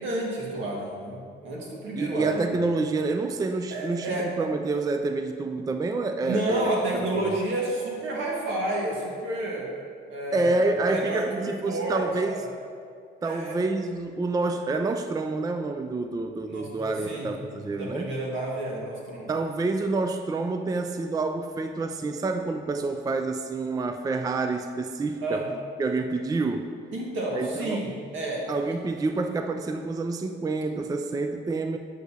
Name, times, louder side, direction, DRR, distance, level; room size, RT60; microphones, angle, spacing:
voice 1, 0.0-2.5 3.7-4.3 6.2-9.7 10.1-12.4 13.2-13.6 16.5-17.3 17.6-19.3 25.2-25.5 26.9-27.9 28.1-28.8, right 1 dB, 75° right, -3 dB, 1.8 m, -30 dB
voice 2, 2.0-7.4 10.3-12.4 13.2-18.1 19.3-25.4 25.8-26.7 27.3-27.8 28.5-31.8, right 3 dB, 20° right, 7 dB, 0.4 m, -28 dB
8.1 x 7.9 x 2.8 m, 2.2 s
cardioid pair, 90°, 20 cm